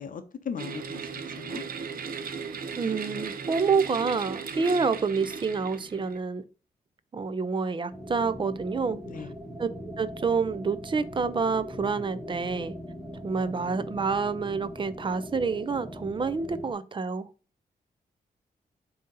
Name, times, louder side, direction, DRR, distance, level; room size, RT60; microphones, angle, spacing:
voice 1, 0.0-1.6 9.0-9.3, left 7 dB, 60° left, 0.6 m, -38 dB
sound 1, 0.6-6.2, right 6 dB, 65° right, 0.7 m, -37 dB
voice 2, 2.8-6.4 7.1-9.0 9.6-9.7 10.0-12.7 13.2-17.3, right 5 dB, 30° right, 0.4 m, -28 dB
sound 2, 7.9-16.7, equal, ahead, 0.7 m, -40 dB
7.4 x 2.8 x 5.3 m
wide cardioid pair, 160°, 16 cm